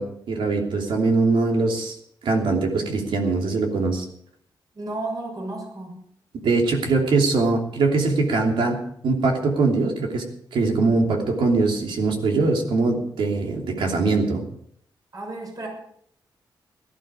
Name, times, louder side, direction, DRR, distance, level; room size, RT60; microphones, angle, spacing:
voice 1, 0.0-2.0 2.2-4.1 6.4-8.8 9.0-10.2 10.5-14.4, right 3 dB, 90° right, 2 dB, 3.1 m, -22 dB
voice 2, 4.7-6.0 15.1-15.7, right 2 dB, 45° right, 1 dB, 6.4 m, -32 dB
17.0 x 12.5 x 5.0 m, 0.67 s
cardioid pair, 90°, 8 cm